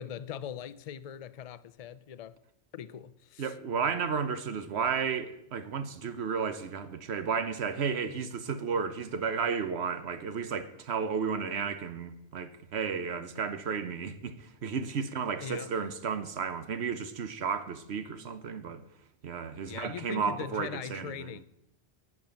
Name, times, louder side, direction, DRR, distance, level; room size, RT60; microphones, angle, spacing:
voice 1, 0.0-2.4 2.7-3.5 15.4-15.7 19.6-21.4, left 9 dB, 50° left, 0.5 m, -41 dB
voice 2, 3.4-18.8 19.2-21.4, right 6 dB, 80° right, 1.2 m, -33 dB
10.5 x 6.1 x 8.9 m
omnidirectional pair, 1.1 m